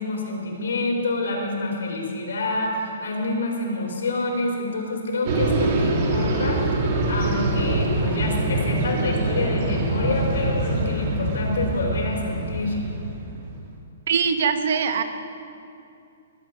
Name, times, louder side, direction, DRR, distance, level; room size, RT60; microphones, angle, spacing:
voice 1, 0.0-6.7 7.1-12.8, left 2 dB, 90° left, 0 dB, 3.6 m, -27 dB
sound 1, 5.3-13.6, right 2 dB, 35° right, 1.7 m, -24 dB
voice 2, 14.1-15.0, right 6 dB, 50° right, 8 dB, 1.0 m, -22 dB
20.5 x 8.4 x 5.1 m, 2.6 s
hypercardioid pair, 175°, 0 cm